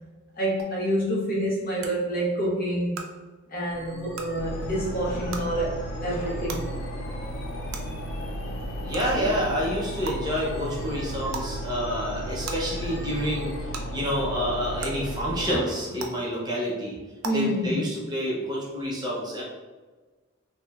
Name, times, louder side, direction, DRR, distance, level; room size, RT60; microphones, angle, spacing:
voice 1, 0.4-3.0 3.5-6.6 9.1-9.4 15.3-15.6 17.2-17.8, right 1 dB, 45° left, 0.8 m, -28 dB
sound 1, 0.6-0.7 1.8-1.9 2.9-3.0 4.1-4.2 5.3-5.4 6.5-6.6 7.7-7.8 8.9-9.0 10.0-10.1 11.3-11.5 12.4-12.5 13.7-13.8 14.8-14.9 16.0-16.1 17.2-17.3, right 5 dB, 80° right, 0.4 m, -34 dB
sound 2, 3.7-13.7, equal, 10° left, 1.1 m, -43 dB
sound 3, 4.4-15.5, equal, 70° left, 0.4 m, -34 dB
voice 2, 8.8-13.5 13.9-17.0 17.3-19.4, equal, 20° right, 0.6 m, -28 dB
3.1 x 2.8 x 2.3 m
head